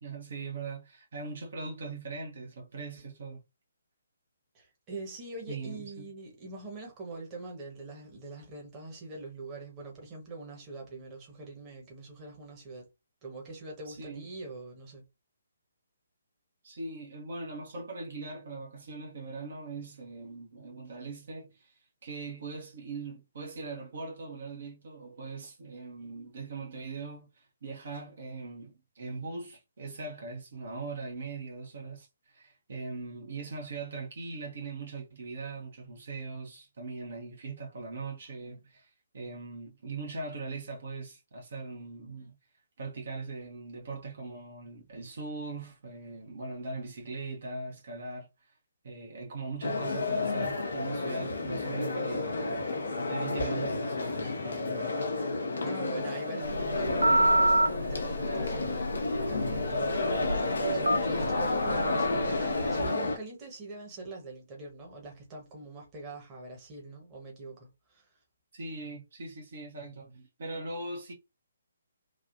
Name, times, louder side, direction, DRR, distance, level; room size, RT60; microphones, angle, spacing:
voice 1, 0.0-3.4 5.5-6.1 13.9-14.3 16.6-42.3 42.8-48.5 48.8-55.1 68.5-71.1, right 3 dB, 55° right, 1.0 m, -40 dB
voice 2, 4.5-12.9 13.2-15.0 55.6-58.9 59.2-68.1, right 2 dB, 25° right, 1.2 m, -43 dB
sound 1, 49.6-63.2, left 2 dB, 65° left, 0.8 m, -31 dB
Telephone, 56.4-62.8, right 1 dB, 80° right, 0.6 m, -29 dB
3.3 x 2.4 x 2.6 m
figure-of-eight pair, 135°, 0 cm